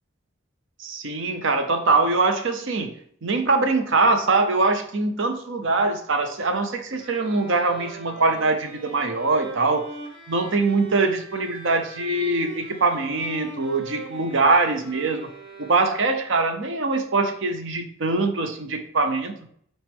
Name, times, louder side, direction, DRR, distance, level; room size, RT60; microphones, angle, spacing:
voice 1, 0.8-2.9 3.2-9.9 10.3-15.3 15.6-19.3, right 3 dB, 65° right, 7 dB, 0.7 m, -23 dB
sound 1, 7.0-16.4, right 2 dB, 85° right, 1.8 m, -41 dB
6.2 x 4.3 x 3.5 m, 0.64 s
head